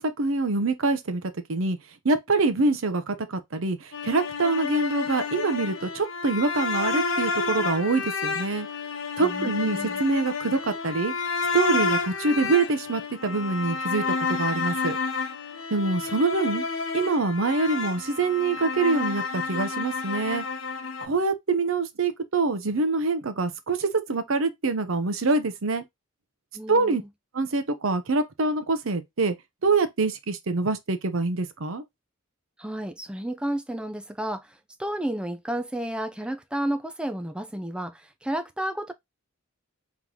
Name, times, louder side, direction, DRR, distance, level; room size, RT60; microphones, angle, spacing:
voice 1, 0.0-1.8 2.0-8.7 9.2-11.1 11.5-15.0 15.7-16.6 16.9-20.4 21.0-25.8 26.7-27.0 27.3-29.3 29.6-31.8, right 3 dB, 70° right, 0.7 m, -25 dB
sound 1, 3.9-21.1, left 4 dB, 70° left, 0.8 m, -30 dB
voice 2, 9.2-10.0 26.5-27.1 32.6-38.9, right 1 dB, 5° right, 0.4 m, -32 dB
3.7 x 3.7 x 3.0 m
head